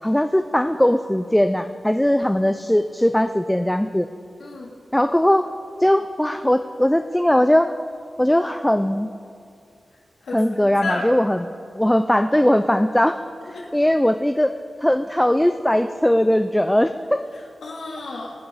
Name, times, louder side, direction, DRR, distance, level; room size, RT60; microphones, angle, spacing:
voice 1, 0.0-4.1 4.9-5.5 5.8-7.7 8.2-9.1 10.3-11.5 11.8-13.2 13.5-14.5 14.8-17.3, left 1 dB, 5° left, 9 dB, 0.4 m, -19 dB
voice 2, 4.4-4.7 10.2-11.1 13.5-13.7 17.6-18.3, left 3 dB, 90° left, -3 dB, 2.9 m, -31 dB
25.0 x 10.5 x 4.0 m, 2.3 s
wide cardioid pair, 140°, 0 cm